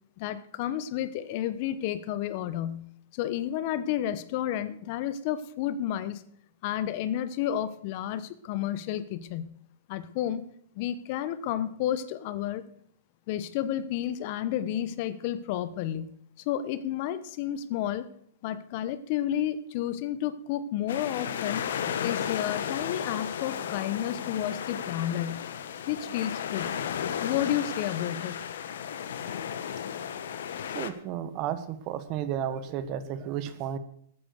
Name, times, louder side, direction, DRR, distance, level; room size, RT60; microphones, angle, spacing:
voice 1, 0.2-2.9 3.1-6.2 6.6-9.5 9.9-10.4 10.8-12.6 13.3-16.1 16.4-18.1 18.4-21.7 22.0-25.4 25.8-26.7 27.2-28.4, left 11 dB, 45° left, 14 dB, 1.0 m, -31 dB
sound 1, 20.9-30.9, left 8 dB, 75° left, 1.2 m, -34 dB
voice 2, 30.7-33.8, right 9 dB, 40° right, 13 dB, 1.2 m, -33 dB
13.5 x 8.9 x 6.5 m, 0.66 s
hypercardioid pair, 140°, 0 cm